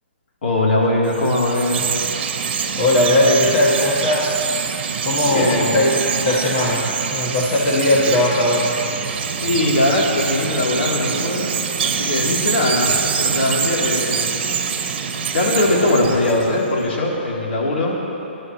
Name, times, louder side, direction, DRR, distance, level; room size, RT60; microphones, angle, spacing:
voice 1, 0.4-2.0 5.3-5.7 9.4-14.3 15.3-18.0, left 2 dB, 65° left, -4 dB, 3.5 m, -20 dB
Chirp tweet, 1.1-16.7, right 6 dB, 55° right, 1.2 m, -24 dB
voice 2, 2.8-4.4 5.0-8.8, left 1 dB, 35° left, -4 dB, 1.5 m, -18 dB
26.5 x 11.0 x 3.2 m, 2.9 s
hypercardioid pair, 155°, 6 cm